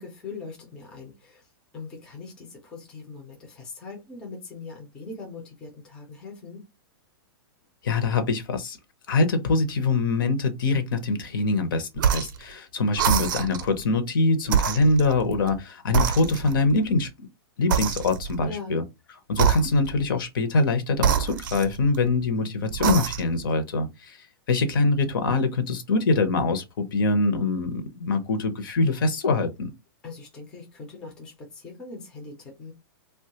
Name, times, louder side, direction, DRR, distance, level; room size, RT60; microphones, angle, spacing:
voice 1, 0.0-6.6 18.4-18.8 30.0-32.7, left 4 dB, 5° left, 0.4 m, -41 dB
voice 2, 7.8-8.8 9.1-17.3 17.6-18.8 19.3-29.7, left 3 dB, 60° left, 0.6 m, -24 dB
sound 1, 12.0-12.4 12.9-13.7 14.4-15.6 15.9-16.7 17.7-18.4 19.3-20.1 21.0-22.1 22.7-23.4, right 7 dB, 55° right, 0.4 m, -25 dB
3.0 x 2.2 x 2.8 m
supercardioid pair, 180°, 12 cm